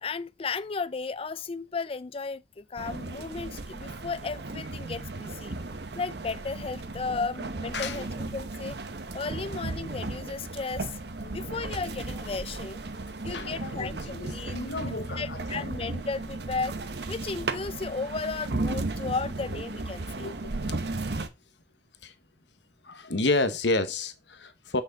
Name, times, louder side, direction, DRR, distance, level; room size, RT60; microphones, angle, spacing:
voice 1, 0.0-5.5 6.0-8.8 9.1-11.0 11.3-12.8 13.2-16.8 17.1-20.3, left 4 dB, 30° left, 0.4 m, -34 dB
sound 1, 2.8-21.3, right 2 dB, 65° right, 1.0 m, -35 dB
voice 2, 11.2-11.5 13.3-15.7 20.2-20.5 22.0-22.1 22.8-24.8, left 2 dB, 75° left, 1.2 m, -31 dB
8.1 x 6.3 x 4.0 m
head